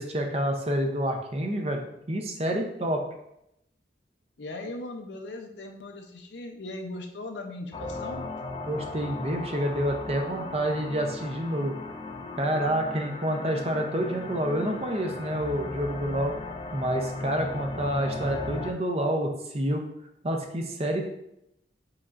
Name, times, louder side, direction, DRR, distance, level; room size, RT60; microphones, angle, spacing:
voice 1, 0.0-1.8 2.1-3.0 8.7-11.8 12.4-16.3 16.7-19.8 20.2-21.0, right 1 dB, 35° right, 3 dB, 0.6 m, -28 dB
voice 2, 4.4-8.2, left 2 dB, 85° left, 4 dB, 0.6 m, -38 dB
sound 1, 7.7-18.7, left 2 dB, 30° left, 0.3 m, -37 dB
4.8 x 4.2 x 2.5 m, 0.80 s
head